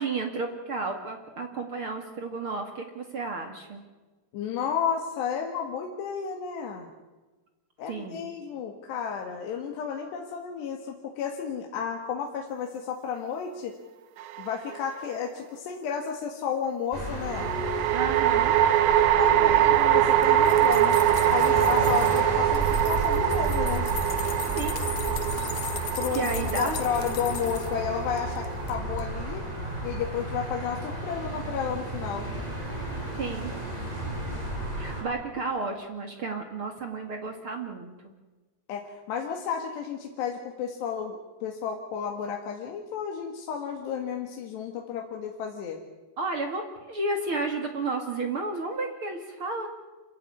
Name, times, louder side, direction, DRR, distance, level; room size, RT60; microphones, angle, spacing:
voice 1, 0.0-3.8 7.9-8.3 17.9-18.6 24.5-24.8 26.1-26.8 33.2-33.5 34.7-37.9 46.2-49.7, right 3 dB, 45° right, 4 dB, 2.0 m, -32 dB
voice 2, 4.3-6.9 7.8-13.8 14.4-17.5 19.2-21.0 21.3-23.9 26.0-29.5 29.8-32.3 38.7-45.8, left 7 dB, 75° left, 2 dB, 3.9 m, -32 dB
sound 1, 14.2-14.9 17.3-28.7, right 12 dB, 75° right, 2.3 m, -24 dB
sound 2, 16.9-35.0, right 1 dB, 10° right, 6.1 m, -32 dB
sound 3, 20.1-22.2 22.5-27.7 28.2-28.7 29.0-29.1, left 10 dB, 60° left, 2.4 m, -39 dB
27.5 x 15.5 x 9.7 m, 1.2 s
omnidirectional pair, 5.0 m